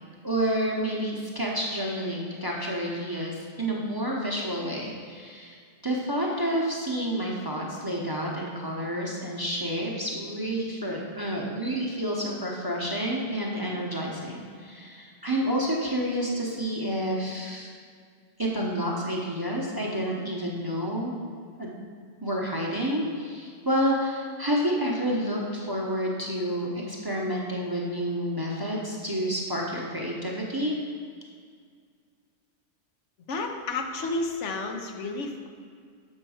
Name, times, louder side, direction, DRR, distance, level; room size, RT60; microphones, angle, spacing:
voice 1, 0.2-17.7 18.4-21.1 21.6-21.8 22.2-30.8, equal, 20° right, -3 dB, 0.7 m, -29 dB
voice 2, 33.3-35.5, left 3 dB, 75° left, 4 dB, 1.0 m, -31 dB
6.3 x 4.4 x 6.2 m, 2.1 s
omnidirectional pair, 1.2 m